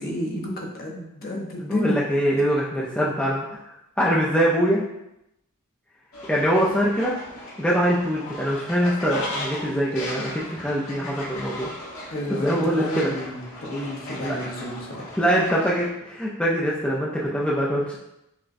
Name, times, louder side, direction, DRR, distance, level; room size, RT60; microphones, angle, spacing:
voice 1, 0.0-2.0 12.1-15.1, equal, 45° left, -1 dB, 0.7 m, -31 dB
voice 2, 1.6-3.4 4.0-4.8 6.3-7.2 7.6-11.7 12.3-13.1 14.2-14.4 15.2-18.0, equal, 5° left, -5 dB, 0.4 m, -23 dB
Fowl, 6.1-15.9, left 1 dB, 80° left, 1.1 m, -37 dB
5.8 x 2.1 x 2.5 m, 0.86 s
head